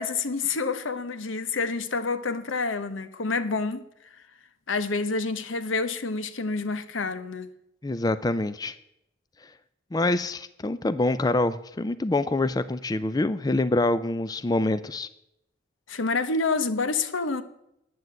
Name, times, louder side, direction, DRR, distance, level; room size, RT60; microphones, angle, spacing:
voice 1, 0.0-3.8 4.7-7.5 15.9-17.4, left 4 dB, 85° left, 1.0 m, -28 dB
voice 2, 7.8-8.7 9.9-15.1, left 2 dB, 20° left, 0.4 m, -25 dB
9.8 x 9.3 x 7.7 m
head